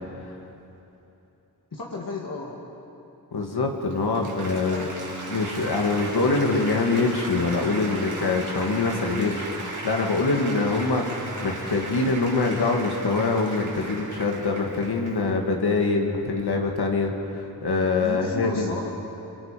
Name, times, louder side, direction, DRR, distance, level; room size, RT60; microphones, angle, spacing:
voice 1, 1.7-2.6 4.6-5.0 18.0-18.9, left 2 dB, 60° left, -3 dB, 2.5 m, -34 dB
voice 2, 3.3-4.9 5.3-18.8, left 3 dB, 85° left, 1 dB, 2.4 m, -24 dB
Applause, 3.7-15.3, right 2 dB, 50° right, 4.7 m, -36 dB
26.0 x 23.5 x 5.3 m, 3.0 s
wide cardioid pair, 105°, 38 cm